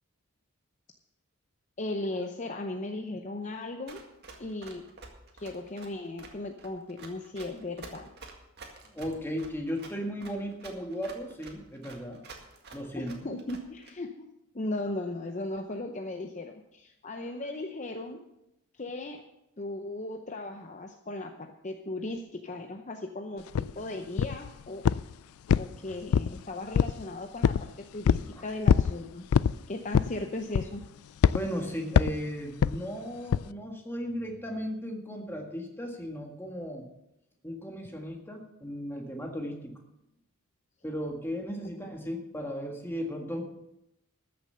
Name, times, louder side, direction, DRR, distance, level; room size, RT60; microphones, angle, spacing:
voice 1, 1.8-4.0 4.4-4.8 5.3-8.1 13.0-14.2 14.5-18.2 18.7-19.2 19.6-24.9 25.5-29.3 29.7-30.8, left 2 dB, 35° left, 5 dB, 0.7 m, -37 dB
Run, 3.9-13.9, right 3 dB, 50° right, 1.9 m, -48 dB
voice 2, 8.8-12.2 12.7-13.1 28.3-28.4 31.3-36.9 37.4-39.7 40.8-43.6, equal, 10° left, 2 dB, 1.7 m, -36 dB
sound 1, 23.6-23.7 24.2-24.5 24.9-25.1 25.5-26.4 26.7-27.0 27.4-27.7 28.1-28.3 28.7-28.9 29.3-29.6 29.9-30.2 30.5-30.9 31.2-31.4 32.0-32.2 32.6-32.8 33.3-33.5, left 7 dB, 80° left, 0.3 m, -23 dB
14.0 x 6.9 x 6.7 m, 0.86 s
head